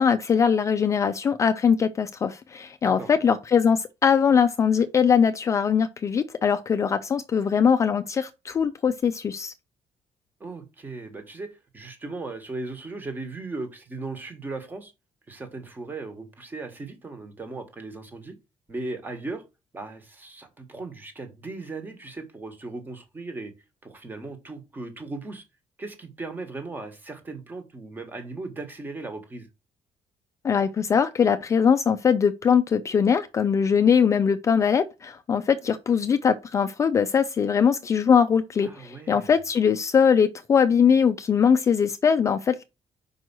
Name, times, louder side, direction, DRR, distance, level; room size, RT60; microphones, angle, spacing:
voice 1, 0.0-9.5 30.4-42.6, left 7 dB, 30° left, 0.4 m, -21 dB
voice 2, 10.4-14.9 15.3-18.3 18.7-19.4 19.7-23.5 23.8-25.4 25.8-29.5 38.6-39.3, right 3 dB, 15° right, 1.3 m, -37 dB
5.4 x 4.6 x 6.0 m
cardioid pair, 175°, 11 cm